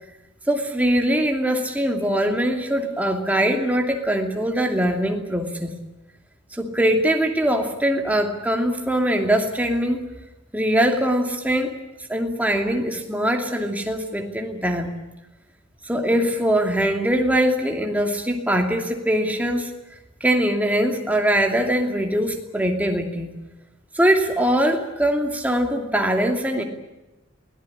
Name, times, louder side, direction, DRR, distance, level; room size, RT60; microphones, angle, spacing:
voice 1, 0.5-5.7 6.5-10.0 10.5-11.8 12.1-14.9 15.8-19.7 20.2-23.3 23.9-26.6, right 1 dB, 10° right, 2 dB, 2.8 m, -22 dB
23.5 x 18.0 x 10.0 m, 1.0 s
head